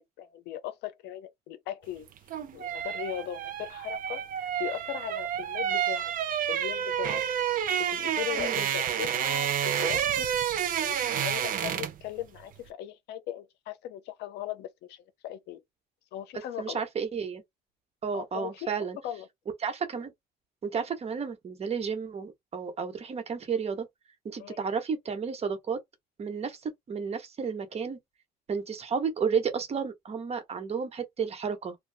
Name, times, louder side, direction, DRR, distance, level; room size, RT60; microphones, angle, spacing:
voice 1, 0.0-2.1 2.5-6.1 6.5-7.2 7.9-15.6 16.1-16.8 18.1-18.7 19.0-19.3 24.4-24.6, left 11 dB, 80° left, 0.6 m, -38 dB
sound 1, 2.1-12.1 12.3-12.6, right 9 dB, 55° right, 0.6 m, -29 dB
voice 2, 8.4-8.7 16.6-17.4 18.0-19.0 19.6-20.1 20.6-23.9 24.2-25.8 26.2-28.0 28.5-31.8, right 6 dB, 40° right, 1.0 m, -32 dB
2.7 x 2.3 x 3.4 m
cardioid pair, 110°, 17 cm